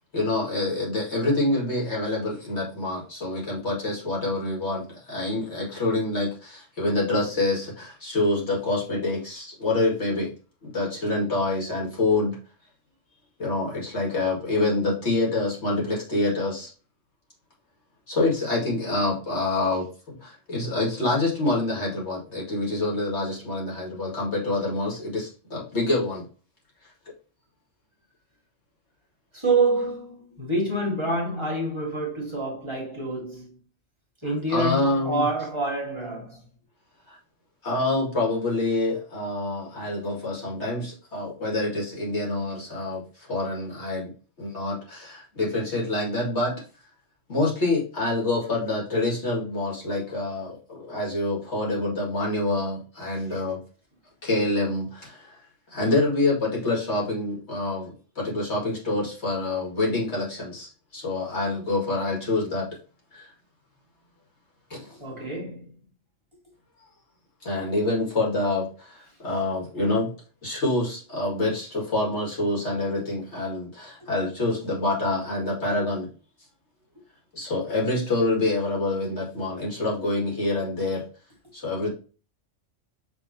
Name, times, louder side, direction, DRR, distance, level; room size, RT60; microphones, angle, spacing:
voice 1, 0.1-10.3 10.6-12.4 13.4-16.7 18.1-26.2 34.5-35.2 37.1-37.2 37.6-44.1 44.4-46.5 47.3-53.6 54.2-55.4 55.7-62.7 63.1-63.3 64.7-65.0 67.4-70.1 70.4-76.1 77.3-81.0 81.5-81.9, left 2 dB, 65° left, 2.5 m, -26 dB
voice 2, 29.3-33.5 34.2-36.4 65.0-65.7 69.8-69.9 74.0-74.1, right 2 dB, 25° right, 1.8 m, -27 dB
5.7 x 3.3 x 2.8 m
omnidirectional pair, 1.3 m